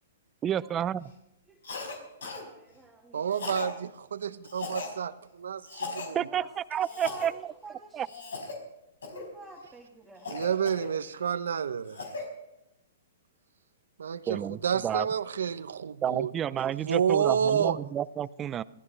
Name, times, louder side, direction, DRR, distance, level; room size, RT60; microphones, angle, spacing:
voice 1, 0.4-1.0 6.1-6.4 6.7-7.5 7.9-8.1 14.3-15.1 16.0-18.6, right 10 dB, 20° right, 18 dB, 0.5 m, -30 dB
voice 2, 1.5-3.6 6.2-8.1 9.1-10.4, right 2 dB, 5° right, -3 dB, 2.2 m, -50 dB
Cough, 1.6-2.0 2.2-2.4 3.3-3.7 4.4-4.9 5.7-6.1 6.8-7.3 8.0-8.6 9.0-9.3 10.2-11.2 11.7-12.3, left 4 dB, 85° left, 5.0 m, -38 dB
voice 3, 3.1-6.2 10.3-12.0 14.0-16.3 16.8-17.8, right 7 dB, 85° right, 13 dB, 0.9 m, -30 dB
22.5 x 16.0 x 3.3 m, 0.88 s
hypercardioid pair, 140°, 0 cm